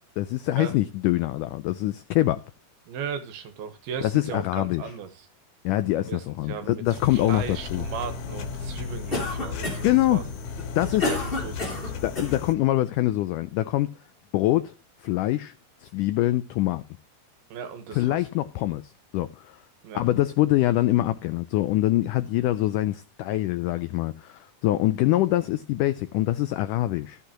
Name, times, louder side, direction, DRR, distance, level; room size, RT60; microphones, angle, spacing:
voice 1, 0.2-2.4 4.0-4.8 5.6-7.9 9.8-10.2 10.8-11.1 12.0-13.9 14.3-14.7 15.0-15.5 15.8-16.8 17.9-19.6 19.9-27.2, left 15 dB, 85° left, 1.8 m, -24 dB
voice 2, 2.9-5.1 6.1-10.2 10.8-12.0 17.5-18.3 19.8-20.0, right 6 dB, 85° right, 3.3 m, -37 dB
sound 1, 6.8-12.5, left 5 dB, 65° left, 1.5 m, -35 dB
Cough, 9.1-10.0 10.6-12.4, left 2 dB, 15° left, 2.7 m, -30 dB
14.0 x 8.3 x 3.0 m
omnidirectional pair, 4.4 m